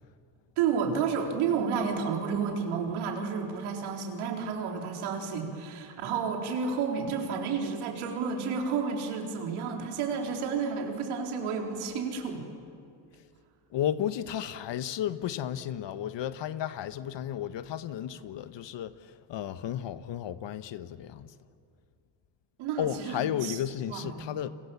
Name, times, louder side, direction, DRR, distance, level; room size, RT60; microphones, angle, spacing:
voice 1, 0.6-12.4 22.6-23.1 23.4-23.6 23.9-24.3, right 6 dB, 80° right, 4.3 m, -31 dB
voice 2, 13.7-21.3 22.8-24.5, left 10 dB, 60° left, 1.3 m, -33 dB
30.0 x 24.5 x 7.2 m
supercardioid pair, 70°, 49 cm